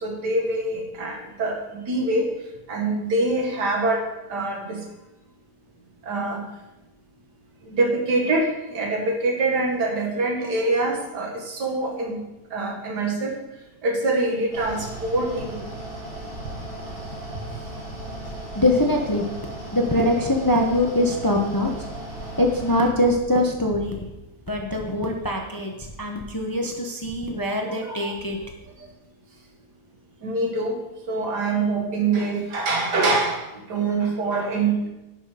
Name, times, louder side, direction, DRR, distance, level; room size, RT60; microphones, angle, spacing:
voice 1, 0.0-2.3 2.7-4.0 4.3-4.8 6.1-6.4 7.7-12.2 12.5-13.4 13.8-15.6 27.7-28.0 30.2-30.8 31.1-33.4 33.7-34.9, right 2 dB, 80° right, 1 dB, 2.2 m, -24 dB
Mechanical fan, 14.5-22.9, right 1 dB, 45° right, 3.4 m, -36 dB
voice 2, 18.6-19.2 19.7-21.7 22.4-24.1 24.5-25.7 26.0-28.4, left 1 dB, 15° left, 1 dB, 0.7 m, -23 dB
11.0 x 5.9 x 5.0 m, 0.99 s
omnidirectional pair, 1.8 m